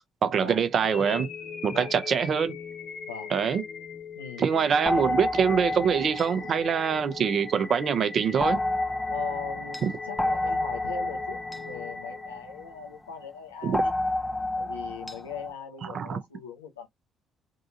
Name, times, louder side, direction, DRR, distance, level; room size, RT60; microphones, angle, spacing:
voice 1, 0.2-1.3 1.6-2.5 3.3-3.6 4.4-8.6 9.8-9.9 13.6-13.8 15.9-16.2, right 7 dB, 45° right, 0.9 m, -24 dB
sound 1, 0.8-12.9, left 5 dB, 50° left, 1.2 m, -40 dB
voice 2, 4.1-4.7 9.1-13.9 14.5-16.9, left 7 dB, 80° left, 1.1 m, -40 dB
sound 2, 4.9-7.6 8.4-12.9 13.7-15.5, left 1 dB, 10° left, 0.8 m, -30 dB
3.8 x 3.7 x 2.8 m
figure-of-eight pair, 45°, 0 cm